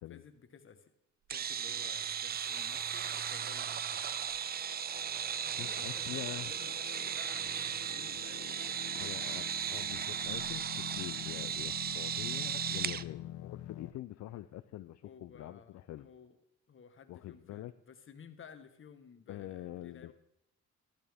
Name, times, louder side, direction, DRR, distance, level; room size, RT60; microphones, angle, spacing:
voice 1, 0.1-0.9 1.3-4.0 5.4-9.5 15.0-16.4 16.7-20.1, left 6 dB, 40° left, 9 dB, 1.2 m, -55 dB
sound 1, 1.3-13.0, right 9 dB, 35° right, 0.4 m, -36 dB
sound 2, 2.3-13.9, left 12 dB, 80° left, 0.8 m, -48 dB
voice 2, 5.6-6.5 9.0-16.1 17.1-17.7 19.3-20.1, left 14 dB, 65° left, 11 dB, 0.5 m, -45 dB
13.0 x 12.5 x 3.5 m, 0.78 s
cardioid pair, 90°, 30 cm